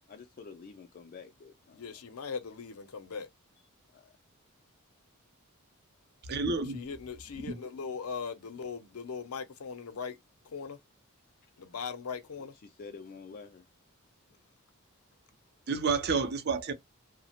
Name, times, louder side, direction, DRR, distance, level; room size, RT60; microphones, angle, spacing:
voice 1, 0.1-1.8 3.9-4.1 12.6-13.7, left 5 dB, 40° left, 0.3 m, -48 dB
voice 2, 1.7-3.3 6.7-10.2 10.5-10.8 11.6-12.5, left 5 dB, 90° left, 0.6 m, -39 dB
voice 3, 6.3-6.8 7.5-7.6 15.7-16.7, right 4 dB, 50° right, 0.5 m, -29 dB
2.8 x 2.0 x 2.8 m
head